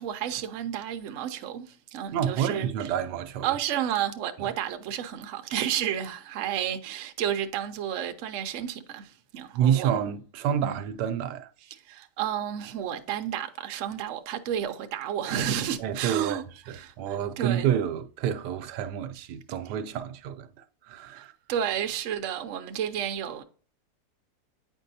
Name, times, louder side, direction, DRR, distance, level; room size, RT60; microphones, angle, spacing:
voice 1, 0.0-2.7 3.4-10.0 10.6-10.8 11.8-17.7 21.1-21.2 21.5-23.4, right 10 dB, 65° right, 0.8 m, -31 dB
voice 2, 2.1-3.6 4.4-4.5 9.5-11.5 15.8-16.4 16.7-21.3, right 9 dB, 80° right, 1.2 m, -29 dB
8.9 x 4.5 x 2.7 m
omnidirectional pair, 1.8 m